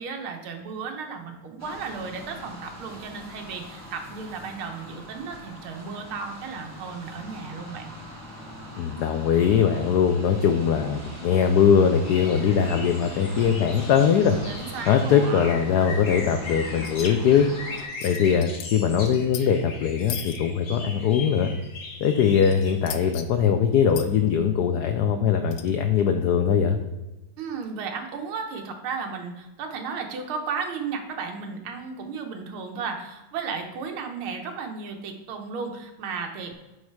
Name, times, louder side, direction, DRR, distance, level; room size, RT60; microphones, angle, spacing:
voice 1, 0.0-7.9 14.4-15.6 27.4-36.5, right 5 dB, 80° right, 4 dB, 1.8 m, -34 dB
sound 1, 1.6-17.9, equal, 10° right, 1.3 m, -41 dB
voice 2, 8.8-14.4 14.9-17.5 18.0-21.5 22.0-26.8, left 7 dB, 90° left, 7 dB, 0.9 m, -21 dB
sound 2, 12.0-23.1, left 3 dB, 55° left, 1.8 m, -39 dB
sound 3, 16.8-17.1 17.4-17.5 17.7-18.7 19.0-19.4 20.0-20.4 22.5-23.2 23.9-24.1 25.5-25.7, left 10 dB, 75° left, 1.2 m, -37 dB
9.4 x 3.3 x 4.6 m, 1.1 s
omnidirectional pair, 2.3 m